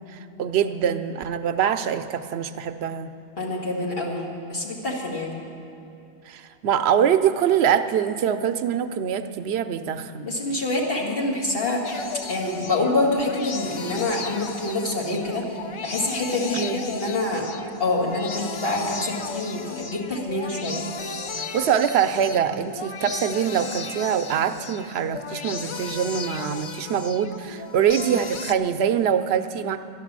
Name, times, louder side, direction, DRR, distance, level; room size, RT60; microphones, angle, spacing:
voice 1, 0.1-3.1 6.3-10.3 16.5-16.8 21.5-29.8, right 8 dB, 80° right, 9 dB, 0.8 m, -24 dB
voice 2, 3.4-4.2 4.5-5.3 10.2-17.4 17.8-20.8, left 2 dB, 65° left, -3 dB, 2.3 m, -26 dB
sound 1, 11.8-28.5, left 4 dB, 45° left, 0.4 m, -35 dB
11.5 x 11.5 x 7.4 m, 2.6 s
omnidirectional pair, 1.1 m